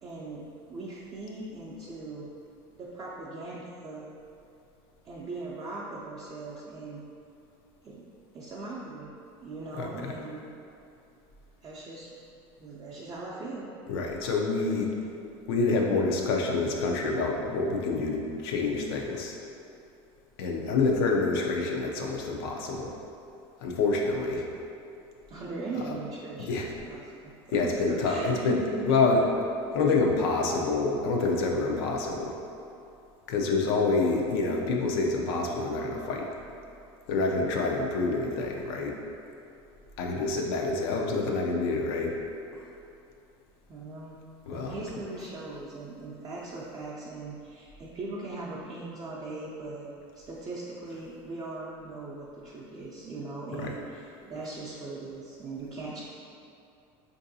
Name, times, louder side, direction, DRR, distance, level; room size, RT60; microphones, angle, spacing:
voice 1, 0.0-0.4 0.7-2.3 2.8-4.0 5.0-7.0 7.8-8.0 8.3-9.1 9.4-10.5 11.6-12.1 12.6-13.7 25.3-27.1 27.5-28.9 43.7-44.2 44.5-56.1, right 3 dB, 30° right, -6 dB, 0.5 m, -39 dB
voice 2, 9.7-10.1 13.9-14.9 15.5-19.4 20.4-22.9 23.6-24.5 26.5-26.7 27.5-28.6 28.9-29.2 29.7-32.4 33.3-36.3 37.1-38.9 40.0-42.2 42.6-42.7 44.5-44.8 53.6-53.7, left 3 dB, 85° left, 0 dB, 0.5 m, -27 dB
4.5 x 2.6 x 2.7 m, 2.6 s
supercardioid pair, 120°, 13 cm